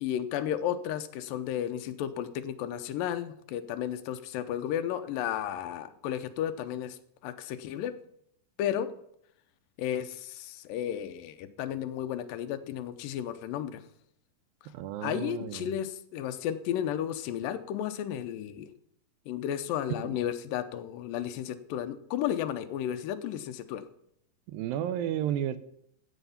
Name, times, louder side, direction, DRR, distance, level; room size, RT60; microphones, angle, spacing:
voice 1, 0.0-7.9 8.6-8.9 9.8-13.8 15.0-18.7 19.3-23.8, left 10 dB, 80° left, 10 dB, 2.4 m, -33 dB
voice 2, 14.7-15.7 20.0-20.1 24.5-25.6, right 10 dB, 85° right, 14 dB, 2.4 m, -32 dB
13.0 x 8.1 x 5.7 m, 0.72 s
omnidirectional pair, 4.1 m